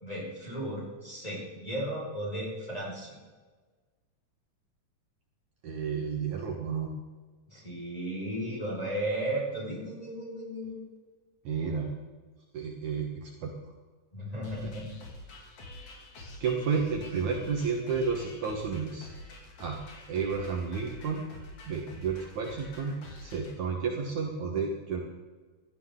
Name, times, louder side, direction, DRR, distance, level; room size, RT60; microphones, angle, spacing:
voice 1, 0.0-3.2 7.5-10.9 14.1-14.9, right 1 dB, 10° left, -5 dB, 5.1 m, -35 dB
voice 2, 5.6-6.9 11.4-11.9 12.5-13.7 15.8-16.1 16.4-19.1 19.6-19.8 20.1-21.2 21.6-25.0, right 5 dB, 60° right, 0 dB, 2.6 m, -31 dB
sound 1, 14.4-23.5, left 1 dB, 55° left, 3.7 m, -47 dB
17.0 x 14.0 x 3.8 m, 1.4 s
omnidirectional pair, 4.1 m